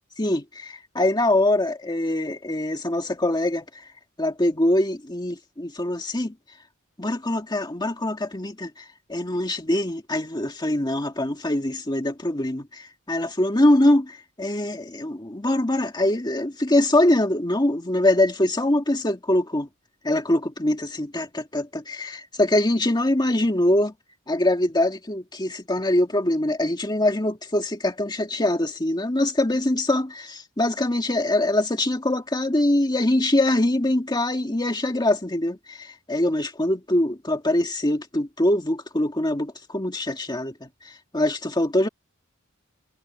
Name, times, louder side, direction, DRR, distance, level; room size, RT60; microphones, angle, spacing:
voice 1, 0.2-3.9 4.2-6.3 7.0-19.7 20.0-23.9 24.3-40.5 40.8-41.9, left 1 dB, 20° left, 1.9 m, -23 dB
head